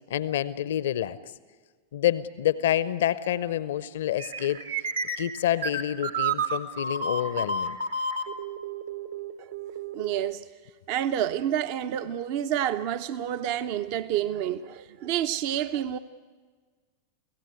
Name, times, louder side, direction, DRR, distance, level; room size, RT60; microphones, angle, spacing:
voice 1, 0.1-1.2 1.9-4.9 5.2-7.8, left 11 dB, 60° left, 0.7 m, -28 dB
sound 1, 4.2-10.3, right 3 dB, 70° right, 1.8 m, -31 dB
voice 2, 9.9-10.5 10.9-16.0, right 10 dB, 45° right, 0.6 m, -29 dB
29.5 x 17.0 x 8.2 m
figure-of-eight pair, 90°, 0 cm